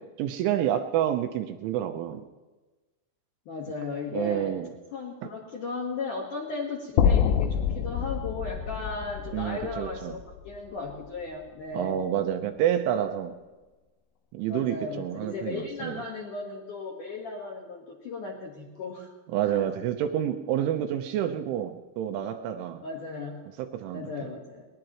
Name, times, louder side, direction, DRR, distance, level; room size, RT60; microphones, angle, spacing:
voice 1, 0.2-2.3 4.1-4.7 5.2-5.3 9.3-10.2 11.7-13.3 14.3-16.0 19.3-22.8 23.6-24.3, right 10 dB, 85° right, 6 dB, 3.1 m, -29 dB
voice 2, 3.5-4.5 4.9-11.9 14.5-19.1 19.5-19.6 22.8-23.4 23.9-24.6, left 4 dB, 65° left, -2 dB, 2.1 m, -36 dB
sound 1, 7.0-11.2, left 8 dB, 80° left, 3.2 m, -27 dB
20.5 x 20.0 x 3.1 m, 1.2 s
omnidirectional pair, 5.8 m